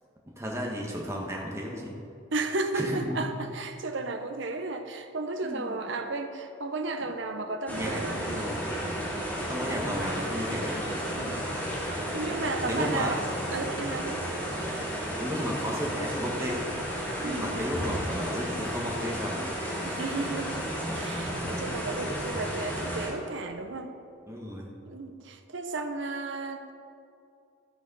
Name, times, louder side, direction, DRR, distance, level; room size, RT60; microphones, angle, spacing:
voice 1, 0.3-1.9 2.7-3.2 5.4-5.8 7.7-8.6 9.4-10.8 12.7-13.2 15.2-16.7 17.2-19.5 24.3-24.7, equal, 15° right, -2 dB, 1.3 m, -33 dB
voice 2, 2.3-8.3 9.6-9.9 11.1-11.5 11.8-13.2 13.5-14.2 17.2-17.6 19.8-23.9 24.9-26.7, right 3 dB, 60° right, 7 dB, 0.8 m, -34 dB
sound 1, 7.7-23.1, equal, 10° left, 2.3 m, -33 dB
14.0 x 6.2 x 5.4 m, 2.5 s
head